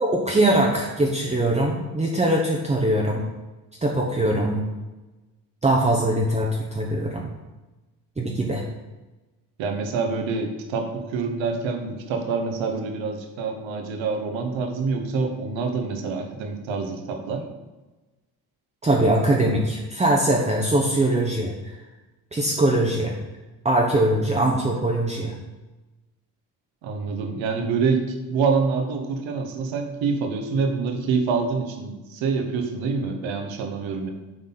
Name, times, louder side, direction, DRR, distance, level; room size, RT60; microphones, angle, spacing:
voice 1, 0.0-3.2 3.8-4.6 5.6-7.3 8.2-8.6 18.8-21.8 22.3-23.2 23.6-25.3, right 1 dB, 15° right, -1 dB, 0.8 m, -22 dB
voice 2, 9.6-17.4 26.8-34.1, right 4 dB, 70° right, 4 dB, 1.3 m, -26 dB
7.6 x 4.1 x 4.0 m, 1.1 s
supercardioid pair, 70°, 48 cm